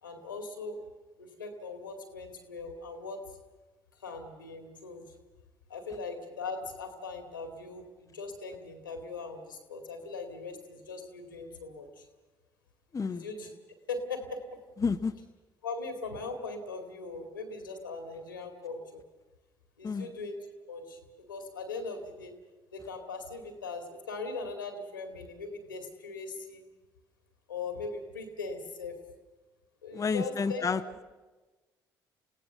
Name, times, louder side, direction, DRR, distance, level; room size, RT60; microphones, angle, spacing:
voice 1, 0.0-0.8 1.2-3.2 3.9-5.1 5.7-12.1 13.1-13.5 13.9-14.4 15.6-19.0 19.8-20.4 20.7-22.3 22.7-26.7 27.5-29.0 29.8-30.6, left 3 dB, 90° left, 6 dB, 2.2 m, -40 dB
voice 2, 12.9-13.2 14.8-15.1 19.8-20.1 29.9-30.8, left 5 dB, 30° left, 8 dB, 0.9 m, -29 dB
29.0 x 16.5 x 6.9 m, 1.2 s
figure-of-eight pair, 50°, 11 cm